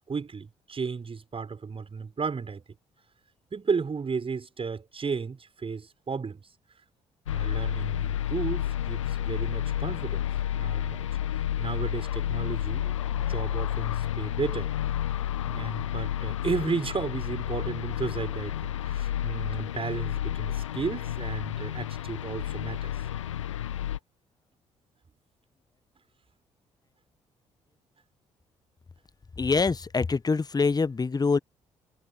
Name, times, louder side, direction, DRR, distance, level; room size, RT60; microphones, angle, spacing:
voice 1, 0.1-2.6 3.5-6.4 7.3-10.3 10.5-11.0 11.3-14.7 15.4-22.9, right 5 dB, 35° right, 6.2 m, -33 dB
sound 1, 7.3-24.0, left 11 dB, 85° left, 1.2 m, -31 dB
voice 2, 29.4-31.4, left 4 dB, 25° left, 1.1 m, -25 dB
figure-of-eight pair, 45°, 16 cm